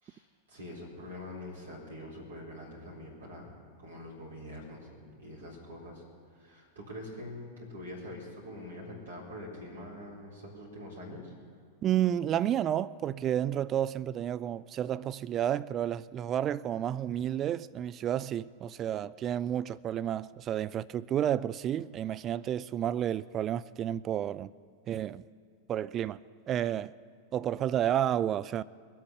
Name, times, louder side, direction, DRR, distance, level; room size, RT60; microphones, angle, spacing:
voice 1, 0.0-3.5 3.8-6.0 6.3-11.3, left 1 dB, 60° right, 4.0 m, -44 dB
voice 2, 11.8-24.5 24.9-25.2 25.7-26.2 26.5-26.9 27.3-28.6, right 10 dB, 30° right, 0.3 m, -31 dB
22.5 x 7.6 x 7.3 m
figure-of-eight pair, 90°, 0 cm